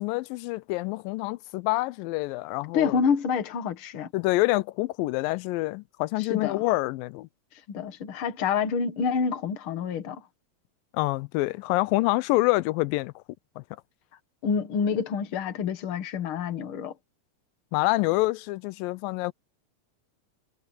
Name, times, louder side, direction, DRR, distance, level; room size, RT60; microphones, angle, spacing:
voice 1, 0.0-3.0 4.1-7.3 10.9-13.1 13.6-13.7 17.7-19.3, left 20 dB, 90° left, 2.3 m, -26 dB
voice 2, 2.7-4.1 6.2-6.6 7.7-10.2 14.4-16.9, left 6 dB, 50° left, 2.0 m, -27 dB
omnidirectional pair, 4.0 m